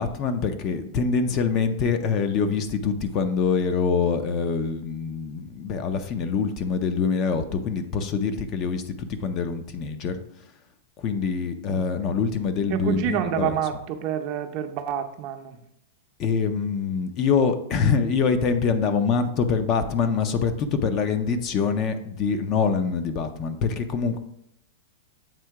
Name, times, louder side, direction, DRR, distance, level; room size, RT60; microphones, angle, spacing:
voice 1, 0.0-10.2 11.0-13.7 16.2-24.2, left 5 dB, 35° left, 8 dB, 0.5 m, -25 dB
voice 2, 12.7-15.6, right 9 dB, 45° right, 6 dB, 0.6 m, -28 dB
7.4 x 2.8 x 4.6 m, 0.75 s
hypercardioid pair, 140°, 0 cm